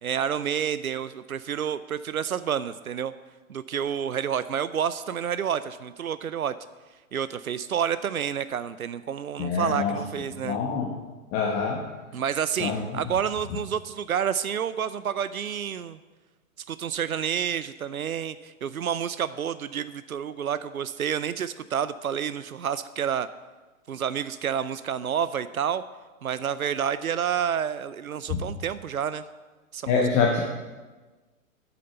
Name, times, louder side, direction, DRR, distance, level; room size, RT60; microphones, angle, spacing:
voice 1, 0.0-3.1 3.5-6.5 7.1-10.6 12.1-16.0 16.7-23.3 23.9-25.8 26.2-29.2 29.7-30.0, right 8 dB, 90° right, 15 dB, 0.6 m, -29 dB
voice 2, 9.4-10.0 10.4-10.9 11.3-11.8 12.6-12.8 28.3-28.5 29.9-30.4, left 5 dB, 30° left, -1 dB, 1.4 m, -25 dB
9.3 x 6.9 x 7.8 m, 1.3 s
figure-of-eight pair, 120°, 42 cm